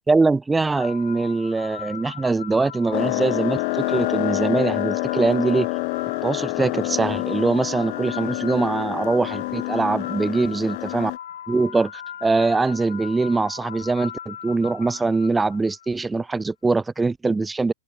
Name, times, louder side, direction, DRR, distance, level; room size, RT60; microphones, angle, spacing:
voice 1, 0.1-5.7 6.2-11.1 11.5-17.7, right 3 dB, 10° right, 0.5 m, -22 dB
sound 1, 0.7-15.9, left 9 dB, 65° left, 2.0 m, -38 dB
sound 2, 2.9-11.2, left 40 dB or more, 45° left, 0.9 m, -27 dB
open air
figure-of-eight pair, 105°, 0 cm